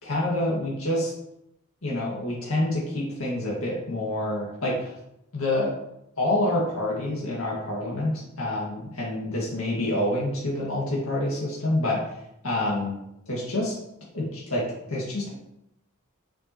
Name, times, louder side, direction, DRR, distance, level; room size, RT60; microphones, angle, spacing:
voice 1, 0.0-1.1 1.8-4.9 5.3-5.7 6.2-12.0 12.4-13.0 13.3-13.8 14.1-15.3, left 1 dB, 65° left, -5 dB, 2.1 m, -27 dB
7.1 x 6.9 x 3.1 m, 0.83 s
head